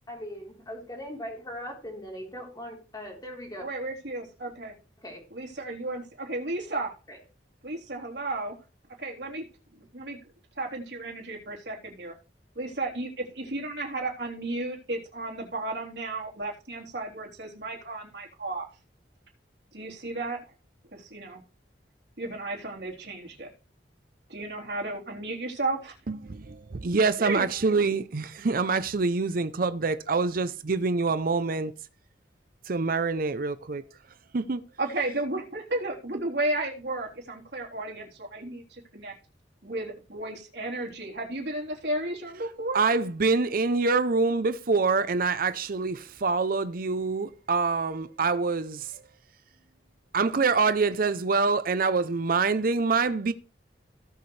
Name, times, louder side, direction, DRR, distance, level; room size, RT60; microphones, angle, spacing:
voice 1, 0.1-3.7 5.0-5.2 7.1-7.2, equal, 20° left, 3.9 m, -40 dB
voice 2, 3.6-4.7 5.3-6.9 7.6-8.6 9.0-9.4 9.7-10.2 10.6-12.1 12.6-18.7 19.7-20.4 20.9-21.4 22.2-23.5 24.3-25.9 27.2-27.5 34.8-39.1 39.6-42.8, right 2 dB, 65° right, 3.8 m, -33 dB
voice 3, 26.1-31.7 32.7-33.8 34.3-34.6 42.7-49.0 50.1-53.3, right 4 dB, 50° right, 0.6 m, -25 dB
17.5 x 7.0 x 3.3 m
head